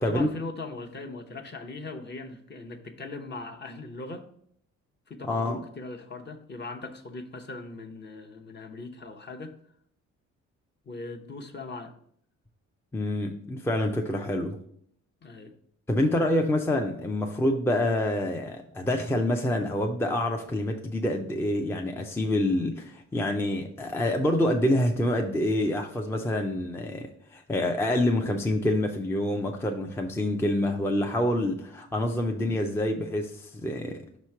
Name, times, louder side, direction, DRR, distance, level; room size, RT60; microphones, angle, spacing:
voice 1, 0.1-4.3 5.1-9.5 10.8-11.9 15.2-15.5, left 3 dB, 35° left, 4 dB, 0.8 m, -39 dB
voice 2, 5.3-5.6 12.9-14.6 15.9-34.0, left 1 dB, 10° left, 3 dB, 0.5 m, -27 dB
5.7 x 3.0 x 5.6 m, 0.67 s
cardioid pair, 90°, 30 cm